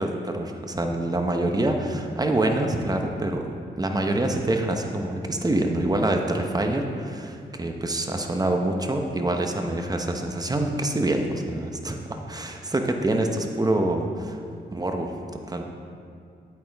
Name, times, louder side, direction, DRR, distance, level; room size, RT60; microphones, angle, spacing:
voice 1, 0.0-3.5 3.7-14.4 14.7-15.1 15.5-15.6, right 1 dB, 20° right, 3 dB, 0.9 m, -26 dB
8.9 x 8.5 x 3.5 m, 2.3 s
cardioid pair, 75°, 18 cm